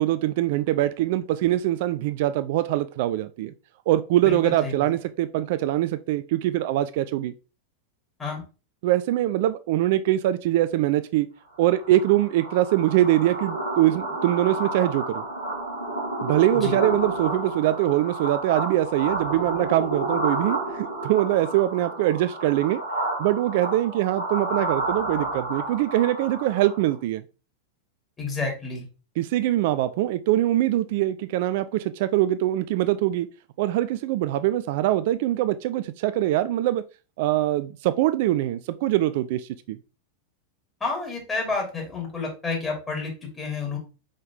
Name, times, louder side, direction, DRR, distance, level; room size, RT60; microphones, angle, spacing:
voice 1, 0.0-3.5 3.9-7.3 8.8-11.3 11.6-15.2 16.2-22.8 23.2-27.2 29.2-33.3 33.6-36.8 37.2-39.8, right 14 dB, 50° right, 0.3 m, -23 dB
voice 2, 4.2-4.9 8.2-8.4 16.5-16.8 28.2-28.9 40.8-43.8, left 4 dB, 15° left, 2.9 m, -30 dB
sound 1, 11.6-26.9, right 2 dB, 80° left, 2.1 m, -30 dB
5.3 x 5.1 x 3.6 m
figure-of-eight pair, 90°, 0 cm